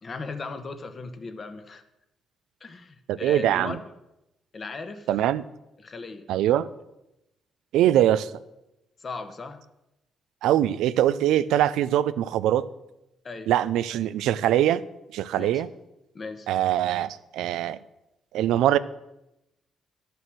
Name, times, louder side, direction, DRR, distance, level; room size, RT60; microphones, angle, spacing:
voice 1, 0.0-1.8 2.6-3.8 4.5-5.1 5.8-6.3 9.0-9.6 13.2-13.5 15.4-15.6 16.1-16.5, left 4 dB, 40° left, 9 dB, 1.1 m, -37 dB
voice 2, 3.1-3.8 5.1-5.4 6.3-6.7 7.7-8.3 10.4-12.7 13.5-14.8 15.1-15.7 16.5-17.8 18.3-18.8, right 12 dB, 90° right, 15 dB, 0.4 m, -22 dB
11.0 x 6.8 x 6.2 m, 0.90 s
cardioid pair, 90°, 0 cm